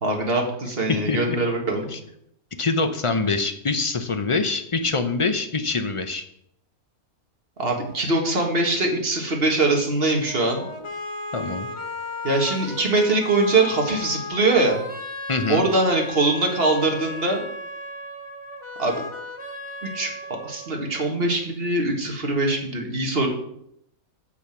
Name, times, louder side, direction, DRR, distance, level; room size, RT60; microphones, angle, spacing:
voice 1, 0.0-1.9 7.6-10.7 12.2-14.8 15.5-17.4 18.8-19.0 19.8-23.3, right 2 dB, 40° right, 1 dB, 1.9 m, -22 dB
voice 2, 0.9-1.4 1.9-2.0 2.6-6.2 11.3-11.7 15.3-15.6, left 3 dB, 40° left, 7 dB, 0.4 m, -24 dB
sound 1, 10.2-21.2, left 2 dB, 25° left, 1.0 m, -35 dB
7.1 x 7.1 x 6.0 m, 0.72 s
omnidirectional pair, 1.5 m